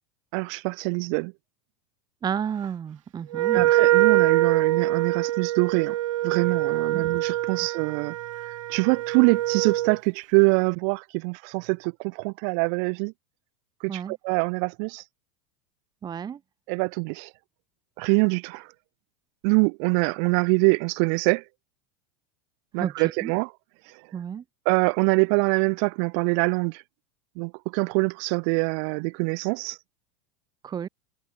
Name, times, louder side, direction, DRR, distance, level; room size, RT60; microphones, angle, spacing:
voice 1, 0.3-1.3 3.5-6.0 6.2-8.2 8.5-13.1 13.8-15.0 16.7-17.3 18.0-18.7 19.4-21.4 22.7-23.5 24.7-26.8 27.4-29.8, right 40 dB or more, 60° right, 2.1 m, -24 dB
voice 2, 2.2-3.7 6.9-7.1 13.9-14.1 16.0-16.4 22.8-22.9 23.2-23.3 24.1-24.4 30.6-30.9, right 8 dB, 25° right, 1.7 m, -31 dB
Wind instrument woodwind instrument, 3.3-10.0, right 15 dB, 85° right, 0.5 m, -24 dB
supercardioid pair, 115°, 16 cm